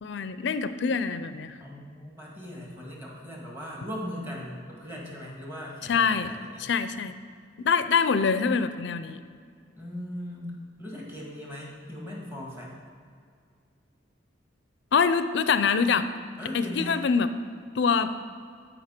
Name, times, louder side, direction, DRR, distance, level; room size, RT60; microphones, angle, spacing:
voice 1, 0.0-1.6 5.9-6.3 6.6-7.2 7.6-9.2 14.9-16.0 16.5-17.3 17.7-18.1, left 5 dB, 65° left, 12 dB, 0.4 m, -24 dB
voice 2, 1.6-6.7 9.8-12.7 16.4-17.0, left 1 dB, 10° right, -3 dB, 1.8 m, -39 dB
13.5 x 5.5 x 4.4 m, 2.2 s
head